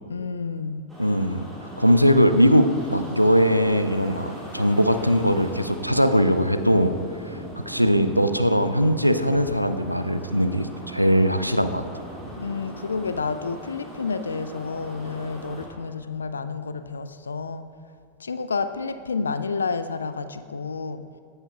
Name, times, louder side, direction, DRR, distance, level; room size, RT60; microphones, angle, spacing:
voice 1, 0.1-0.9 12.4-17.7 18.2-21.0, left 4 dB, 75° left, 11 dB, 0.3 m, -30 dB
sound 1, 0.9-15.7, equal, 5° right, 1.9 m, -39 dB
voice 2, 1.0-1.5 1.8-6.9 7.7-11.8, equal, 90° right, 9 dB, 0.3 m, -20 dB
15.5 x 5.5 x 2.3 m, 2.3 s
figure-of-eight pair, 90°, 0 cm